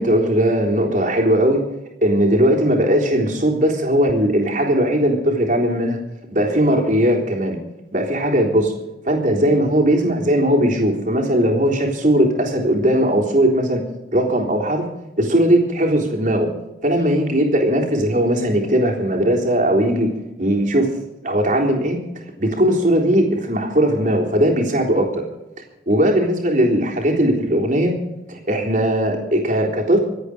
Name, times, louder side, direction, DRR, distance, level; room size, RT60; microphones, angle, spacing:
voice 1, 0.0-1.6 2.0-6.0 6.3-7.6 7.9-8.7 9.1-13.8 14.1-14.9 15.2-16.5 16.8-20.1 20.4-21.0 21.2-22.0 22.4-25.2 25.9-28.0 28.3-30.0, right 1 dB, 45° right, 0 dB, 3.7 m, -18 dB
26.0 x 8.9 x 5.0 m, 0.99 s
head